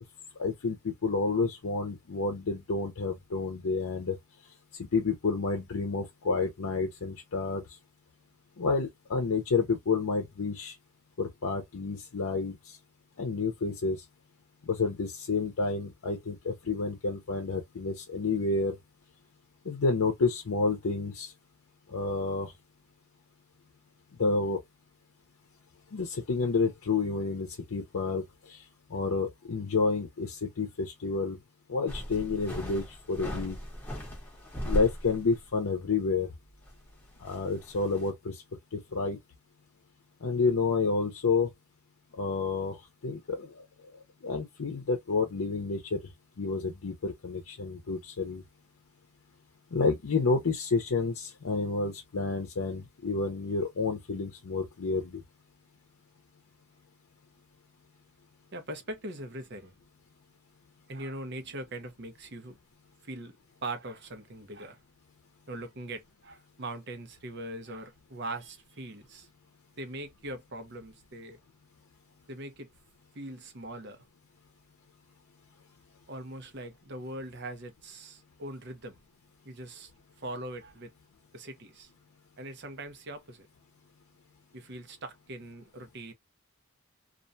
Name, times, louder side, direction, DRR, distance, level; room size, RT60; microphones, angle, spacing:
voice 1, 0.4-4.2 4.9-7.6 8.6-10.7 11.2-12.8 13.2-14.0 14.7-18.8 19.7-21.3 21.9-22.5 24.2-24.6 25.9-28.2 28.5-28.6 28.9-31.4 31.7-33.6 34.6-36.3 37.2-38.4 38.7-39.2 40.2-41.5 42.2-42.8 43.0-43.6 44.2-46.0 46.4-48.4 49.7-55.2, left 4 dB, 80° left, 0.6 m, -29 dB
sound 1, 31.9-35.5 35.8-35.9 36.5-38.1, equal, 10° left, 0.8 m, -37 dB
voice 2, 58.5-59.7 60.9-62.6 63.0-63.4 63.6-64.8 65.5-69.3 69.8-71.4 72.3-72.7 73.1-74.1 76.1-79.0 79.4-79.9 80.2-80.9 81.3-81.9 82.4-83.5 84.5-86.1, right 1 dB, 50° right, 0.7 m, -41 dB
2.5 x 2.2 x 2.5 m
head